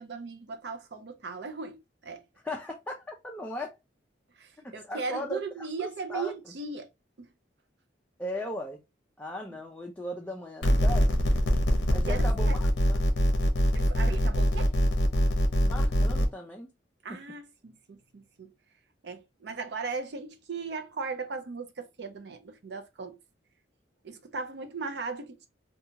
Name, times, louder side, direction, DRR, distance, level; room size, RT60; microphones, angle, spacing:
voice 1, 0.0-2.2 4.4-6.9 7.2-7.3 11.9-12.6 13.7-14.7 17.0-18.5 19.0-23.2 24.0-25.5, right 4 dB, 60° right, 0.5 m, -38 dB
voice 2, 2.4-3.8 4.6-5.4 5.8-6.3 8.2-8.8 9.2-11.3 11.9-13.0 15.6-16.7, left 1 dB, 10° left, 0.3 m, -37 dB
sound 1, 10.6-16.3, equal, 65° left, 0.6 m, -24 dB
2.7 x 2.3 x 2.7 m
head